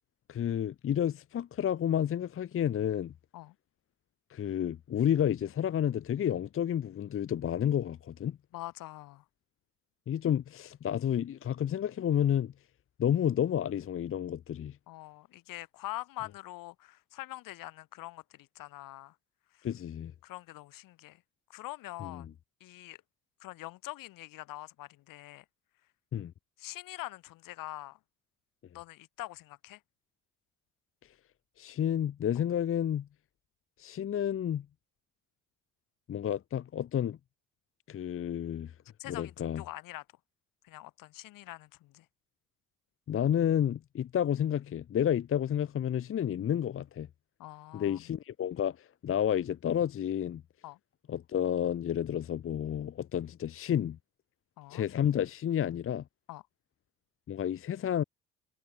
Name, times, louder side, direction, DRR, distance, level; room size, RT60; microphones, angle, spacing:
voice 1, 0.3-3.1 4.3-8.4 10.1-12.5 13.0-14.8 19.6-20.1 22.0-22.2 26.1-26.3 31.6-33.1 33.8-34.7 36.1-37.2 37.9-38.7 39.1-39.6 43.1-47.1 47.7-50.4 51.1-54.0 54.7-56.0 57.3-58.0, left 10 dB, 40° left, 0.8 m, -30 dB
voice 2, 8.5-9.2 14.9-19.2 19.5-19.7 20.2-21.2 21.5-22.3 22.6-23.0 23.4-25.4 26.6-28.0 28.7-29.8 32.3-32.4 39.0-40.0 40.6-42.1 47.4-48.1 50.6-50.8 54.6-54.9 56.3-56.4, left 17 dB, 70° left, 2.9 m, -44 dB
hypercardioid pair, 60°, 35 cm